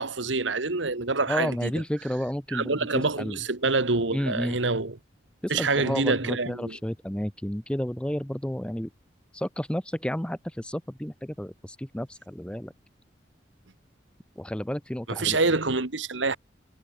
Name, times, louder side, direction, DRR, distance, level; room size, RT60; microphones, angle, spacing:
voice 1, 0.0-1.7 2.5-5.0 5.5-6.8 15.1-16.4, right 3 dB, 85° right, 1.8 m, -26 dB
voice 2, 1.3-3.4 4.1-4.6 5.4-8.9 9.3-12.7 14.4-15.4, equal, 5° left, 0.7 m, -31 dB
head